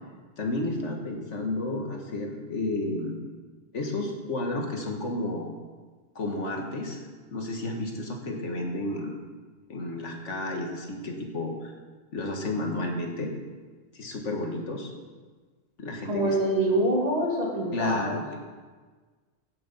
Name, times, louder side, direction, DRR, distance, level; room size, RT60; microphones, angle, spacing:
voice 1, 0.4-3.2 3.7-5.5 6.2-7.0 7.3-9.2 9.7-11.7 12.1-13.3 13.9-14.9 15.8-16.4 17.7-18.4, left 2 dB, 85° left, 2 dB, 1.9 m, -31 dB
voice 2, 16.1-18.2, right 1 dB, 35° right, -3 dB, 2.6 m, -25 dB
16.5 x 6.9 x 5.3 m, 1.4 s
omnidirectional pair, 1.2 m